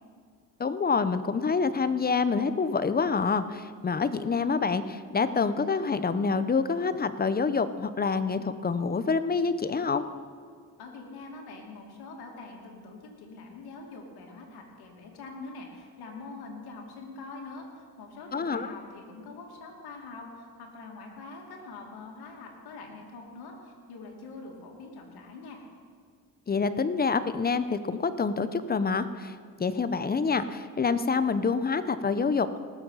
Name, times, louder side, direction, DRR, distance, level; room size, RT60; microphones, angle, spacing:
voice 1, 0.6-10.0 18.3-18.7 26.5-32.6, left 5 dB, 25° left, 12 dB, 0.7 m, -27 dB
voice 2, 10.8-25.6, left 3 dB, 85° left, 1 dB, 2.4 m, -44 dB
18.5 x 7.3 x 5.6 m, 2.1 s
cardioid pair, 85°, 37 cm